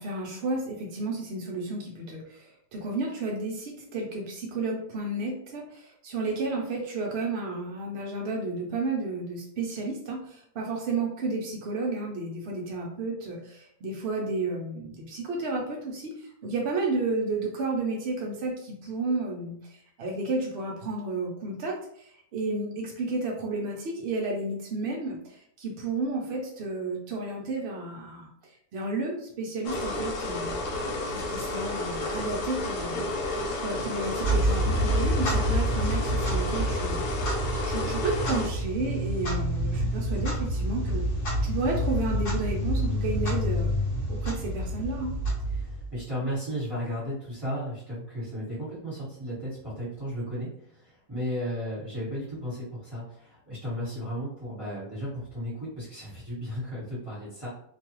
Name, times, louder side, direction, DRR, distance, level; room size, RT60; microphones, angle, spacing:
voice 1, 0.0-30.6 31.1-33.1 33.6-37.2 37.6-41.1 41.4-43.7 44.1-45.2, right 3 dB, 70° right, -1 dB, 0.6 m, -32 dB
sound 1, 29.6-38.5, left 2 dB, 80° left, 1.2 m, -32 dB
Clock, 34.1-46.0, equal, 60° left, 0.9 m, -28 dB
voice 2, 45.5-57.5, equal, 15° right, -10 dB, 1.2 m, -34 dB
2.6 x 2.3 x 2.9 m, 0.67 s
omnidirectional pair, 1.6 m